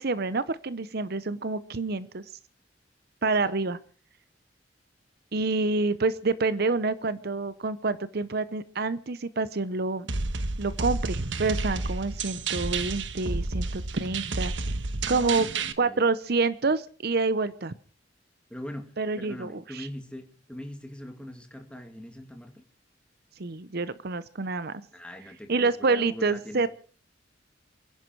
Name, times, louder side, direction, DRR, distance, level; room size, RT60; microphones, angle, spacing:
voice 1, 0.0-2.2 3.2-3.8 5.3-10.1 10.6-14.5 15.1-15.5 15.8-17.7 19.0-19.9 23.4-24.8 25.5-26.7, right 3 dB, 60° right, 15 dB, 0.8 m, -27 dB
sound 1, 10.1-15.7, right 3 dB, 80° right, 1.3 m, -30 dB
voice 2, 15.0-16.0 18.5-18.9 19.2-22.6 24.9-26.7, equal, 5° left, 4 dB, 2.6 m, -41 dB
28.5 x 11.0 x 4.6 m, 0.40 s
head